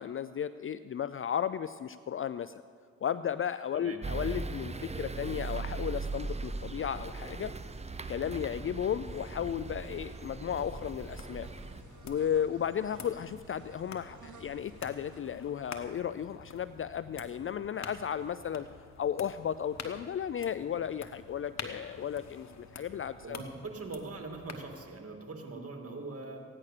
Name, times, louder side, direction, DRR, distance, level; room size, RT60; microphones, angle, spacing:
voice 1, 0.0-2.6 3.0-7.5 8.1-11.5 12.0-18.7 19.0-23.4, left 9 dB, 45° left, 14 dB, 0.4 m, -34 dB
sound 1, 4.0-11.8, right 3 dB, 20° right, 0.8 m, -39 dB
sound 2, 4.3-15.2, right 5 dB, 80° right, 1.1 m, -56 dB
sound 3, 11.1-24.9, left 5 dB, 65° left, 1.3 m, -48 dB
voice 2, 23.2-26.4, right 3 dB, 50° right, 3 dB, 2.4 m, -42 dB
16.0 x 9.9 x 6.6 m, 2.2 s
cardioid pair, 55°, 30 cm